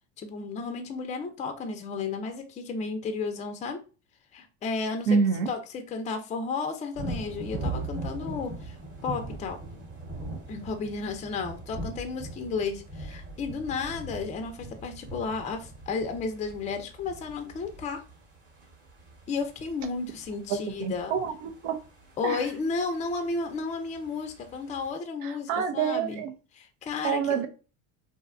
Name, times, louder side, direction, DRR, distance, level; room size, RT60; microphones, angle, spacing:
voice 1, 0.2-3.8 4.3-5.2 5.5-8.8 9.0-9.6 10.5-18.0 19.3-21.1 22.2-26.2 26.5-27.4, left 4 dB, 20° left, 0.4 m, -33 dB
voice 2, 5.1-5.5 20.5-21.8 22.2-22.4 25.2-26.3 27.0-27.5, right 6 dB, 85° right, 0.6 m, -27 dB
sound 1, 7.0-24.9, right 2 dB, 30° right, 1.0 m, -41 dB
2.6 x 2.1 x 2.4 m
supercardioid pair, 110°, 38 cm